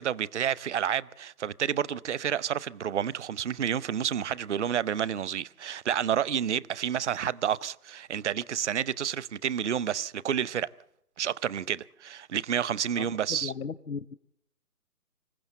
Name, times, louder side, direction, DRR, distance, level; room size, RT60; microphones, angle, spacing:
voice 1, 0.0-10.7 11.2-13.5, right 9 dB, 50° right, 0.7 m, -30 dB
voice 2, 13.4-14.1, left 5 dB, 75° left, 0.9 m, -36 dB
26.0 x 15.0 x 7.9 m
figure-of-eight pair, 140°, 44 cm